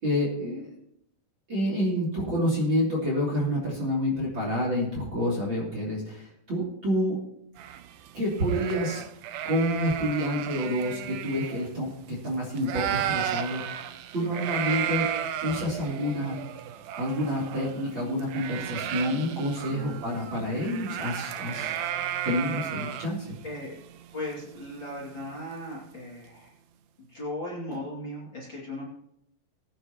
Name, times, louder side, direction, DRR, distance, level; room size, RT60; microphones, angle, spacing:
voice 1, 0.0-0.7 1.5-7.2 8.1-9.0 9.4-15.1 15.4-16.4 17.0-21.9 22.2-23.3, equal, 30° right, -4 dB, 3.2 m, -28 dB
sound 1, 7.6-12.3 12.6-25.5, right 10 dB, 80° right, 2.2 m, -34 dB
voice 2, 19.7-20.1 21.5-21.7 23.4-23.8 24.1-26.5 27.1-28.8, left 1 dB, 30° left, -5 dB, 2.7 m, -37 dB
21.0 x 9.6 x 3.0 m, 0.75 s
omnidirectional pair, 4.9 m